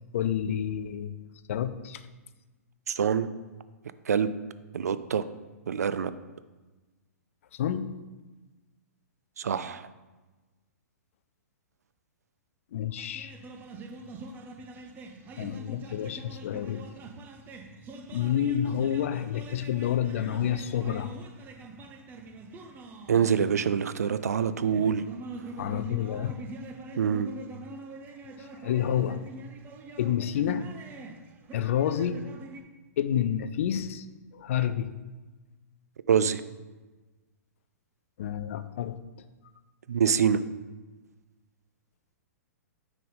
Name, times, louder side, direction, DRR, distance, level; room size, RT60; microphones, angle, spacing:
voice 1, 0.1-1.1 1.5-2.0 7.5-7.9 12.7-13.3 15.4-16.9 18.1-21.1 25.6-26.3 28.6-29.2 30.0-30.6 31.5-32.2 33.0-34.1 34.3-34.9 38.2-39.0, left 10 dB, 50° left, 11 dB, 0.4 m, -29 dB
voice 2, 2.9-3.3 4.1-4.3 4.7-5.2 5.7-6.1 9.4-9.9 23.1-25.0 27.0-27.3 36.1-36.4 39.9-40.4, right 7 dB, 70° right, 14 dB, 0.4 m, -25 dB
sound 1, 13.0-32.6, right 2 dB, 20° right, 0.6 m, -44 dB
9.1 x 3.6 x 3.8 m, 1.2 s
figure-of-eight pair, 115°, 9 cm